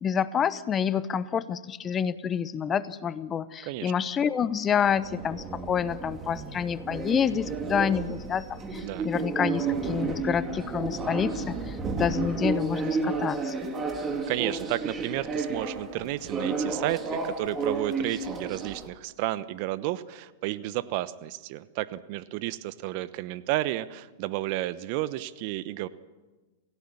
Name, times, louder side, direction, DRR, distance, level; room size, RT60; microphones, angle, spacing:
voice 1, 0.0-13.5, left 7 dB, 25° left, 16 dB, 0.9 m, -28 dB
sound 1, 4.7-18.9, right 4 dB, 20° right, 3.0 m, -32 dB
voice 2, 14.3-25.9, right 16 dB, 50° right, 15 dB, 1.0 m, -32 dB
28.0 x 16.5 x 7.1 m, 1.2 s
hypercardioid pair, 105°, 0 cm